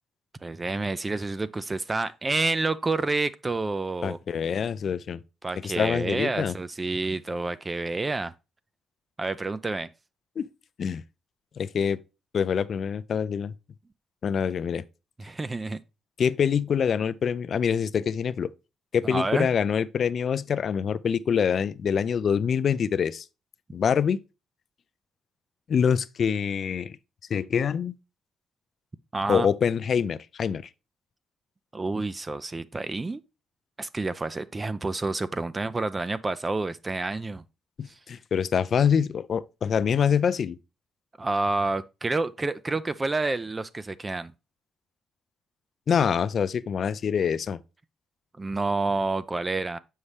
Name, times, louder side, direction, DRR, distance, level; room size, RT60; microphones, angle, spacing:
voice 1, 0.4-4.2 5.4-8.3 9.2-9.9 15.2-15.8 19.0-19.5 29.1-29.5 31.7-33.2 33.8-37.4 37.9-38.0 41.2-44.3 48.4-49.8, right 3 dB, 25° right, 0.3 m, -29 dB
voice 2, 4.0-5.2 5.6-6.5 10.4-10.5 10.8-11.0 11.6-12.0 12.3-13.5 14.2-14.8 16.2-18.5 18.9-23.3 23.7-24.2 25.7-27.0 27.3-27.9 29.3-30.7 37.8-40.6 45.9-47.6, left 7 dB, 55° left, 0.4 m, -25 dB
7.0 x 5.5 x 3.3 m
cardioid pair, 90°, 0 cm